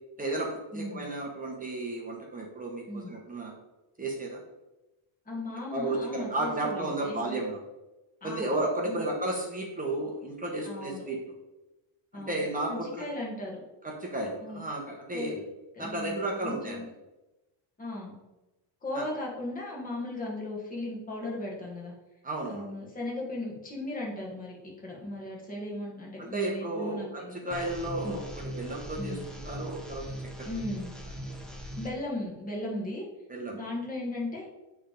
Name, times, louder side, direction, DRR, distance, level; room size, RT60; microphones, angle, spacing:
voice 1, 0.2-3.5 4.0-4.4 5.7-7.6 8.2-11.2 12.1-13.1 13.8-15.3 15.8-16.8 18.9-19.1 22.2-22.7 26.2-28.2 28.6-30.7 31.3-31.4 33.3-33.6, right 2 dB, 15° right, -1 dB, 0.9 m, -33 dB
voice 2, 0.7-1.1 2.9-3.1 5.2-7.4 8.2-8.4 8.8-9.0 10.6-11.1 12.1-12.4 12.7-13.6 14.4-14.6 15.1-15.4 15.7-16.9 17.8-18.2 18.8-21.9 22.5-27.4 28.0-28.2 29.0-29.3 30.4-30.9 31.8-33.0 33.5-34.5, left 1 dB, 15° left, -3 dB, 1.6 m, -37 dB
sound 1, 27.5-31.9, equal, ahead, 0.6 m, -40 dB
8.1 x 3.5 x 5.1 m, 1.0 s
cardioid pair, 165°, 50 cm